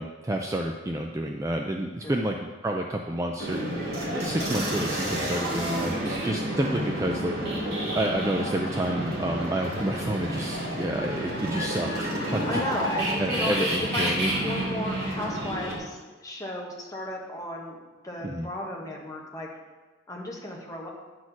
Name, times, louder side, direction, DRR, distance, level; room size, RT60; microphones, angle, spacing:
voice 1, 0.0-2.4 2.6-3.9 4.1-7.3 7.9-12.6 13.2-14.3 18.2-18.5, right 1 dB, 15° right, 2 dB, 0.3 m, -29 dB
sound 1, 3.4-15.8, right 1 dB, 50° right, 2.2 m, -30 dB
voice 2, 12.4-17.8 18.0-19.5 20.1-20.9, left 1 dB, 15° left, -2 dB, 1.2 m, -34 dB
9.5 x 4.3 x 6.0 m, 1.3 s
head